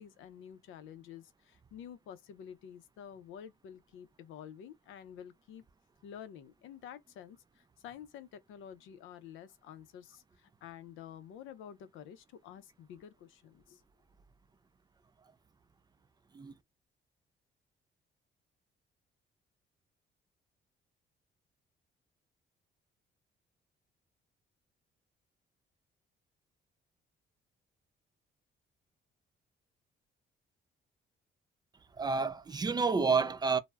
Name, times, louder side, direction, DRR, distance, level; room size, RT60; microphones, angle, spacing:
voice 1, 0.0-5.6 6.0-13.8, left 9 dB, 85° left, 0.5 m, -50 dB
voice 2, 31.9-33.6, right 4 dB, 20° right, 0.3 m, -29 dB
2.2 x 2.0 x 3.3 m
cardioid pair, 90°, 20 cm